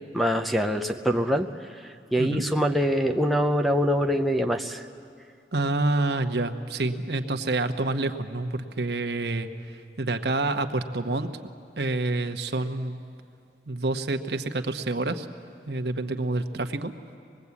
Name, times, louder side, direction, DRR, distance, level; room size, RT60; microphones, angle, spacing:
voice 1, 0.1-1.5 2.1-4.8, equal, ahead, 6 dB, 0.6 m, -24 dB
voice 2, 5.5-9.5 10.0-11.3 11.8-13.0 13.7-15.3 15.7-16.9, right 2 dB, 75° right, 7 dB, 1.1 m, -27 dB
24.0 x 20.5 x 8.4 m, 2.3 s
head